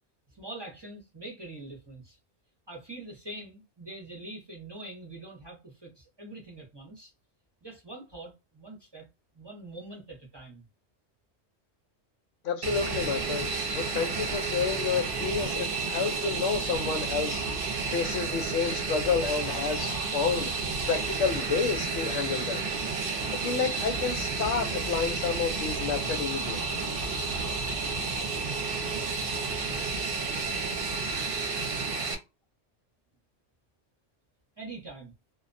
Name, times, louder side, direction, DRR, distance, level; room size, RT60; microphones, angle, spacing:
voice 1, 0.3-2.2 2.7-7.1 7.6-9.1 9.3-10.6 34.6-35.1, right 2 dB, 25° right, 0.7 m, -44 dB
voice 2, 12.4-13.5 13.7-17.4 17.9-20.5 20.9-22.6 23.3-26.9, left 6 dB, 90° left, 1.0 m, -30 dB
Fixed-wing aircraft airplane, 12.6-32.1, right 4 dB, 55° right, 0.7 m, -31 dB
2.2 x 2.2 x 2.5 m
omnidirectional pair, 1.2 m